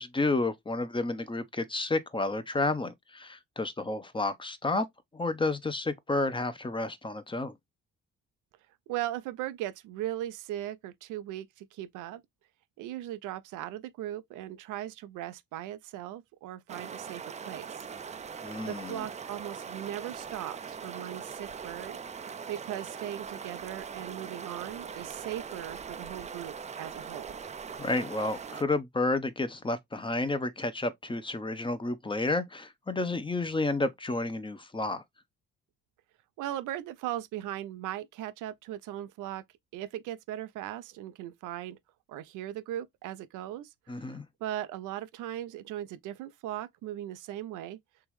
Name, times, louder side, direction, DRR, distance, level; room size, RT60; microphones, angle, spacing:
voice 1, 0.0-4.9 5.1-7.5 18.4-19.0 27.8-35.0 43.9-44.3, left 2 dB, 15° left, 0.6 m, -31 dB
voice 2, 8.9-12.2 12.8-17.9 18.7-22.0 22.5-27.3 36.4-39.4 39.7-41.8 42.1-47.8, right 13 dB, 85° right, 0.5 m, -38 dB
sound 1, 16.7-28.6, right 6 dB, 25° right, 0.4 m, -41 dB
3.5 x 3.0 x 3.1 m
cardioid pair, 90°, 30 cm